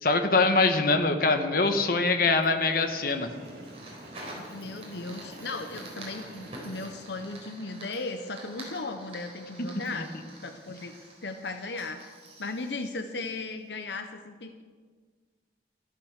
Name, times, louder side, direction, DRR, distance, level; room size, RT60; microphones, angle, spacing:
voice 1, 0.0-3.3, left 3 dB, 55° left, 6 dB, 1.3 m, -23 dB
Fire, 2.4-13.8, right 2 dB, 35° right, 4.1 m, -48 dB
Train, 2.7-7.8, right 1 dB, 65° right, 4.7 m, -47 dB
voice 2, 4.3-10.1 10.4-10.9 11.2-12.0 12.4-14.6, left 3 dB, 80° left, 7 dB, 0.9 m, -36 dB
13.5 x 12.5 x 6.6 m, 1.5 s
head